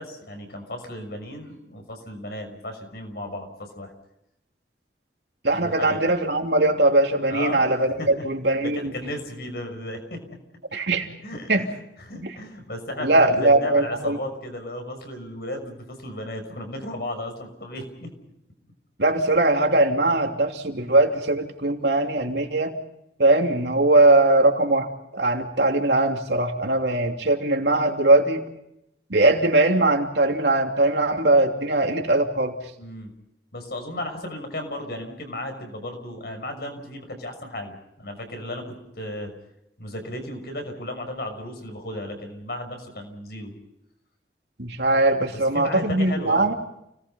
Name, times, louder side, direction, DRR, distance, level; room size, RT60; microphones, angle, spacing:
voice 1, 0.0-3.9 5.5-6.1 7.3-7.7 8.0-8.3 8.6-10.4 11.2-18.1 32.8-33.1 33.5-39.3 39.8-43.5 45.5-46.5, left 1 dB, 60° left, 5 dB, 6.1 m, -34 dB
voice 2, 5.4-8.9 10.7-11.1 11.5-11.6 13.0-14.2 19.0-22.7 23.2-28.5 29.1-32.5 44.6-46.5, right 2 dB, 75° right, 3 dB, 3.0 m, -20 dB
30.0 x 19.5 x 5.6 m, 0.82 s
head